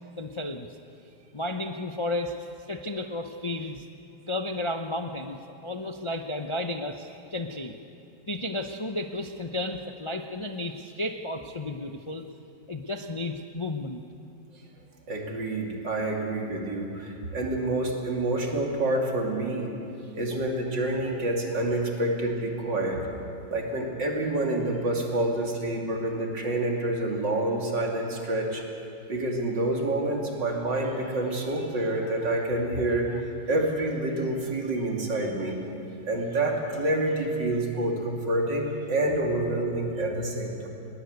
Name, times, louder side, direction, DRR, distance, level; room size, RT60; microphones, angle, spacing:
voice 1, 0.2-0.7 1.3-3.8 4.3-7.8 8.3-12.2 12.7-14.0 20.0-20.1 33.1-33.2, left 1 dB, 40° left, 4 dB, 0.4 m, -33 dB
voice 2, 15.1-19.7 20.1-23.1 23.5-28.7 29.1-33.1 33.5-35.6 36.0-40.7, right 1 dB, 70° right, 0 dB, 3.4 m, -28 dB
20.0 x 20.0 x 8.2 m, 2.7 s
omnidirectional pair, 2.0 m